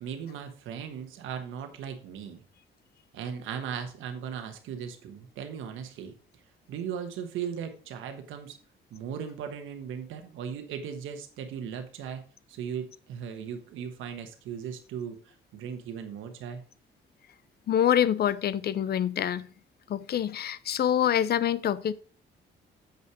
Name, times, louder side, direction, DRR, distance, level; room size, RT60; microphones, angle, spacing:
voice 1, 0.0-2.4 3.1-6.1 6.7-8.6 8.9-12.2 12.5-16.6, right 7 dB, 90° right, 1.2 m, -37 dB
voice 2, 17.7-19.5 19.9-21.9, left 10 dB, 55° left, 0.6 m, -26 dB
7.6 x 5.6 x 4.7 m
cardioid pair, 90°, 20 cm